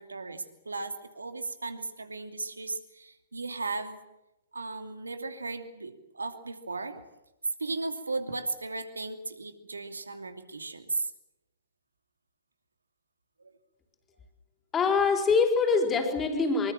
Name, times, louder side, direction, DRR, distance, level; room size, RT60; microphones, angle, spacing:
voice 1, 0.0-4.0 4.5-7.0 7.6-11.1, right 3 dB, 80° right, 7 dB, 2.7 m, -36 dB
voice 2, 14.7-16.7, left 4 dB, 20° left, 4 dB, 4.3 m, -24 dB
25.0 x 23.5 x 7.5 m, 0.95 s
figure-of-eight pair, 115°, 0 cm